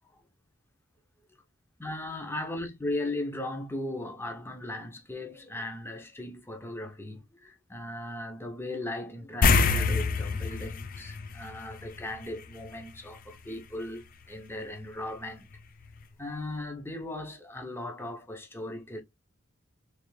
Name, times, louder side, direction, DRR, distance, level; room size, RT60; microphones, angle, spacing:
voice 1, 1.8-15.5 16.2-19.0, left 1 dB, 10° left, 0.7 m, -37 dB
sound 1, 9.4-12.2 12.5-12.7 15.6-15.7 16.0-16.1, left 4 dB, 45° left, 0.4 m, -25 dB
3.3 x 3.1 x 3.1 m
head